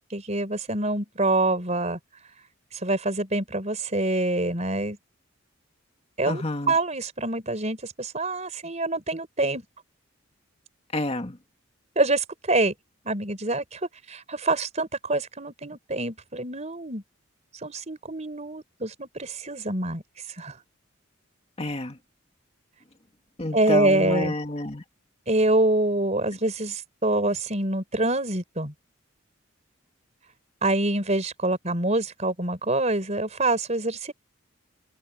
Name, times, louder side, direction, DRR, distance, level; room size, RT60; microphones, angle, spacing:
voice 1, 0.1-2.0 2.8-5.0 6.2-9.6 11.9-12.7 13.0-13.8 14.1-17.0 17.6-20.0 20.4-20.6 23.5-24.3 25.3-28.7 30.6-34.1, right 2 dB, 35° right, 4.6 m, -26 dB
voice 2, 6.3-6.7 10.9-11.4 21.6-22.0 23.4-24.8, left 1 dB, 30° left, 2.0 m, -29 dB
head